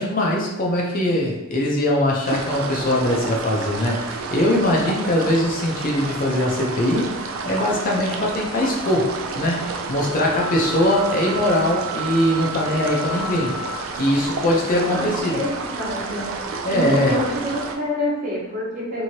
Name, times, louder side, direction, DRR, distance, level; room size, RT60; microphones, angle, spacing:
voice 1, 0.0-13.6 13.9-15.4 16.6-17.1, left 1 dB, 40° left, -2 dB, 0.6 m, -21 dB
sound 1, 2.2-17.8, right 4 dB, 70° right, 0.4 m, -30 dB
sound 2, 10.3-14.4, right 4 dB, 85° left, 0.5 m, -33 dB
voice 2, 14.8-15.5 15.8-16.2 16.7-19.0, left 1 dB, 40° right, -6 dB, 1.0 m, -26 dB
3.0 x 2.7 x 2.8 m, 0.97 s
head